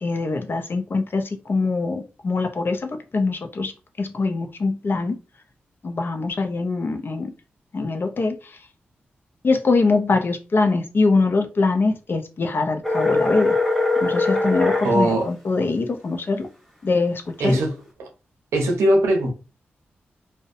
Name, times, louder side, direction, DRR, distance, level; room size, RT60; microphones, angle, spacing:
voice 1, 0.0-3.7 4.0-5.2 5.8-7.3 7.7-8.4 9.4-13.6 14.0-16.5 16.8-17.6, left 3 dB, 50° left, 0.5 m, -23 dB
sound 1, 12.8-14.9, left 3 dB, 5° left, 1.1 m, -21 dB
voice 2, 14.8-15.3 17.4-18.1 18.5-19.3, right 1 dB, 90° right, 0.6 m, -20 dB
2.5 x 2.1 x 2.5 m
supercardioid pair, 40°, 5 cm